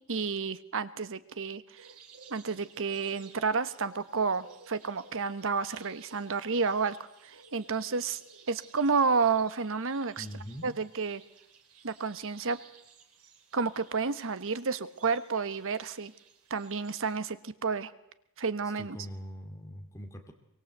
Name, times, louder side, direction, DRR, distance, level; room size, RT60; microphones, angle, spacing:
voice 1, 0.1-1.9 2.3-7.0 7.2-8.2 8.5-10.3 10.6-11.2 11.8-12.6 13.5-16.1 16.5-17.9 18.4-19.0, right 5 dB, 65° right, 13 dB, 1.2 m, -30 dB
sound 1, 1.8-17.1, right 6 dB, 90° right, 4.4 m, -57 dB
voice 2, 10.2-10.7 18.6-20.3, equal, 15° left, 4 dB, 2.5 m, -43 dB
24.0 x 23.5 x 8.1 m, 0.85 s
head